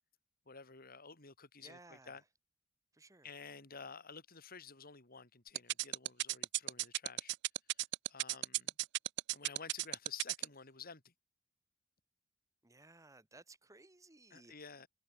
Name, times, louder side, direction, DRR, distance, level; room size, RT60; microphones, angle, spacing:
voice 1, 0.5-2.2 3.2-7.3 7.7-8.7 9.3-11.1 14.3-14.9, left 5 dB, 45° left, 3.2 m, -52 dB
voice 2, 1.6-2.2 2.9-3.3 12.6-14.7, right 2 dB, 15° right, 1.5 m, -59 dB
sound 1, 5.6-10.4, right 17 dB, 55° right, 0.3 m, -34 dB
head